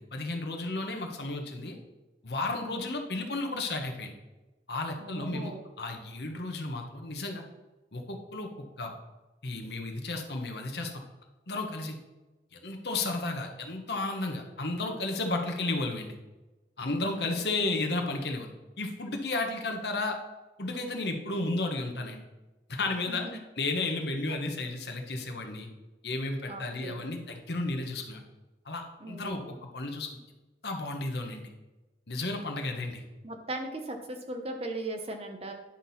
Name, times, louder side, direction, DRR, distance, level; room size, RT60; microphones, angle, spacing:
voice 1, 0.0-1.8 2.2-4.1 4.7-7.4 7.9-8.9 9.4-11.0 11.5-11.9 12.5-16.1 16.8-18.5 18.8-20.2 20.6-22.2 22.7-23.3 23.5-25.7 26.0-28.2 28.6-30.1 30.6-31.5 32.1-33.0, left 2 dB, 70° left, 3 dB, 1.2 m, -33 dB
voice 2, 5.0-5.6 17.1-17.3 23.1-23.4 24.3-24.4 26.5-27.1 29.0-29.5 33.2-35.5, right 2 dB, 35° right, 4 dB, 1.0 m, -38 dB
10.0 x 6.1 x 4.2 m, 1.1 s
head